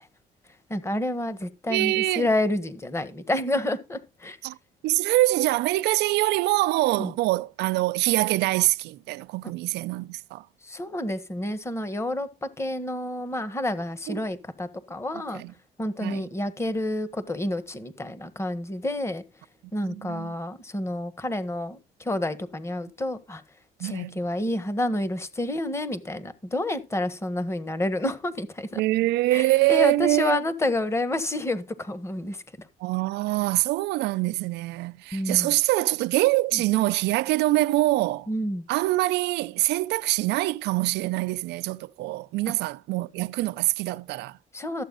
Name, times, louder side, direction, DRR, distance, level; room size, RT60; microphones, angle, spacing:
voice 1, 0.7-4.4 7.0-7.1 10.6-15.4 15.8-19.2 19.7-23.4 23.8-28.8 29.3-32.7 35.1-35.5 36.5-36.6 38.3-38.6 44.5-44.8, left 1 dB, 15° left, 1.4 m, -29 dB
voice 2, 1.7-2.3 4.4-4.6 4.8-10.5 14.1-14.2 15.3-15.5 16.0-16.3 19.8-20.3 23.8-24.2 28.7-30.4 32.8-38.3 38.7-44.4, right 18 dB, 85° right, 0.5 m, -24 dB
13.5 x 8.1 x 4.0 m
cardioid pair, 110°, 17 cm